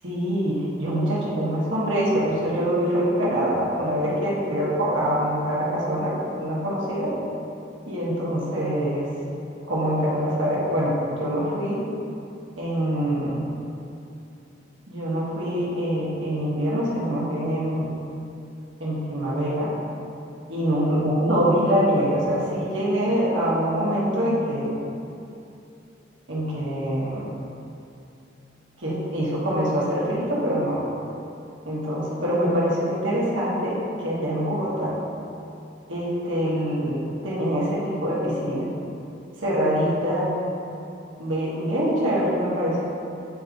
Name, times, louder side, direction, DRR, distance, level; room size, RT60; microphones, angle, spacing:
voice 1, 0.0-7.2 7.9-11.9 12.6-13.4 14.9-17.9 18.8-19.7 20.5-24.8 26.3-27.3 28.8-30.9 31.6-35.0 35.9-38.7 39.4-40.3 41.2-42.8, equal, 80° right, -8 dB, 1.5 m, -24 dB
8.8 x 4.7 x 2.6 m, 2.7 s
head